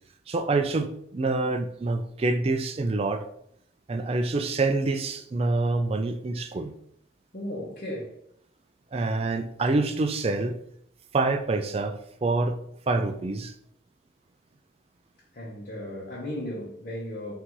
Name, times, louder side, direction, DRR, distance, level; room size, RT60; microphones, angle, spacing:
voice 1, 0.3-3.2 3.9-6.8 8.9-10.6 11.1-12.6 12.9-13.5, right 3 dB, 30° right, 8 dB, 0.3 m, -26 dB
voice 2, 7.3-8.2 15.3-17.3, left 1 dB, 45° left, -7 dB, 0.9 m, -35 dB
3.9 x 2.7 x 4.5 m, 0.71 s
head